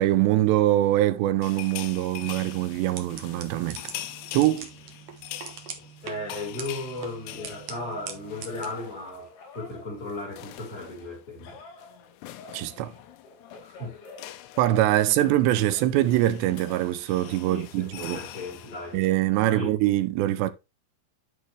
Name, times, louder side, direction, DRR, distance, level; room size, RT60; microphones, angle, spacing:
voice 1, 0.0-3.8 4.3-4.7 12.5-12.9 14.6-18.2 18.9-20.5, right 14 dB, 85° right, 2.8 m, -23 dB
sound 1, 1.4-9.3 9.6-9.8 10.0-19.1, left 13 dB, 80° left, 2.8 m, -43 dB
sound 2, 2.2-8.7, right 7 dB, 70° right, 1.6 m, -43 dB
voice 2, 6.0-11.6 13.6-14.0 15.3-16.1 17.5-19.0 19.5-19.8, left 2 dB, 20° left, 3.6 m, -36 dB
Telephone, 6.6-11.0 11.4-14.9 15.1-17.7 18.2-18.7, left 3 dB, 60° left, 5.9 m, -49 dB
11.0 x 4.8 x 3.1 m
omnidirectional pair, 5.0 m